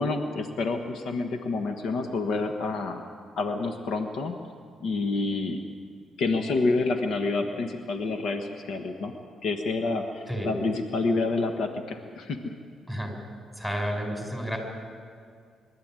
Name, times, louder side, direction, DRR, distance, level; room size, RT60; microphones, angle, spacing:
voice 1, 0.0-3.0 3.4-4.4 4.8-5.6 6.2-9.1 9.4-12.5, left 3 dB, 70° left, 5 dB, 1.4 m, -28 dB
voice 2, 13.6-14.6, equal, 10° left, 2 dB, 5.2 m, -31 dB
23.5 x 12.5 x 9.0 m, 2.2 s
cardioid pair, 90°, 0 cm